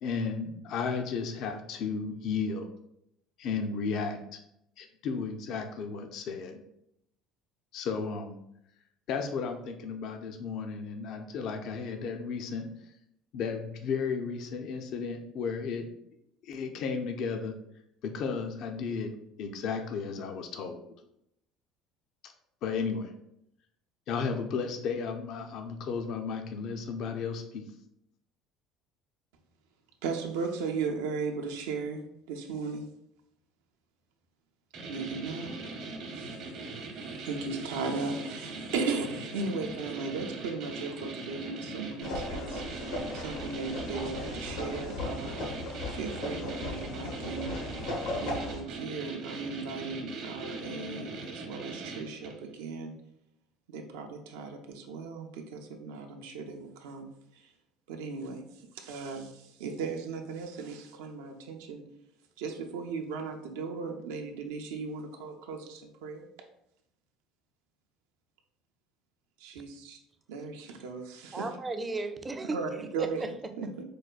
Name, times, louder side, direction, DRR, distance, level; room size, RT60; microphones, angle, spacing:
voice 1, 0.0-2.7 3.4-4.4 4.8-6.6 7.7-8.4 9.1-12.6 13.3-15.9 16.4-17.5 18.0-19.1 19.4-20.8 22.6-23.1 24.1-27.6, left 5 dB, 60° left, 5 dB, 0.4 m, -34 dB
voice 2, 30.0-32.0 32.3-32.8 34.8-35.8 36.2-36.3 36.9-37.0 37.3-42.6 43.1-45.5 46.0-47.5 48.2-52.3 52.6-52.9 53.7-57.1 57.9-58.5 58.8-59.3 59.6-61.8 62.4-66.3 69.4-70.0 70.3-71.4 72.5-73.8, right 4 dB, 90° right, 4 dB, 0.5 m, -36 dB
sound 1, 34.7-52.5, right 3 dB, 65° right, 0.8 m, -41 dB
sound 2, 42.0-48.6, left 2 dB, 80° left, 0.8 m, -37 dB
voice 3, 71.3-73.8, right 2 dB, 20° right, 8 dB, 0.4 m, -36 dB
4.6 x 2.2 x 2.4 m, 0.77 s
supercardioid pair, 100°, 0 cm